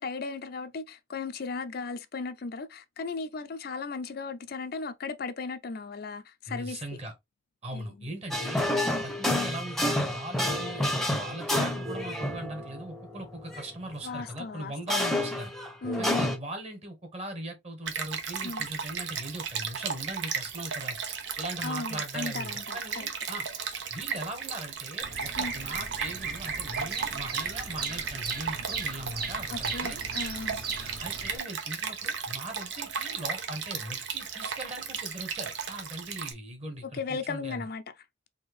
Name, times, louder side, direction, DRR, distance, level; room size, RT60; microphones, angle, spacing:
voice 1, 0.0-6.8 7.7-7.9 8.8-9.0 14.0-14.7 15.8-16.2 18.4-18.7 21.6-23.1 25.4-25.5 29.5-30.6 36.8-37.8, left 4 dB, 55° left, 0.5 m, -36 dB
voice 2, 6.5-7.1 7.6-8.7 9.0-15.5 16.0-23.5 23.9-30.0 31.0-37.6, right 1 dB, 35° right, 1.4 m, -40 dB
sound 1, 8.3-13.7 14.1-14.2 14.9-16.4, left 1 dB, ahead, 0.8 m, -29 dB
Stream, 17.9-36.3, right 6 dB, 75° right, 0.9 m, -35 dB
Bird vocalization bird call bird song, 25.0-31.4, right 4 dB, 55° right, 1.1 m, -37 dB
4.3 x 2.9 x 3.3 m
head